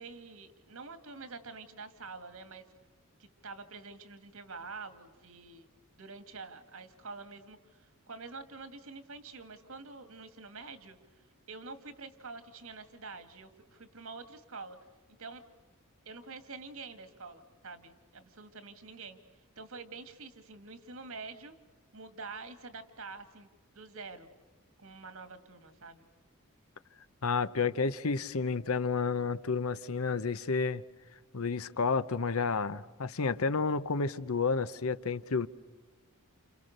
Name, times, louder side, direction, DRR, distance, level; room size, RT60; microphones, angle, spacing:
voice 1, 0.0-2.6 3.2-5.7 6.0-11.0 11.5-14.8 15.2-15.4 16.1-19.2 19.6-21.6 21.9-23.5 23.7-24.3 24.8-26.1, right 4 dB, 70° right, 2.3 m, -47 dB
voice 2, 27.2-30.8 31.3-35.5, left 4 dB, 75° left, 0.9 m, -30 dB
30.0 x 29.5 x 6.7 m
head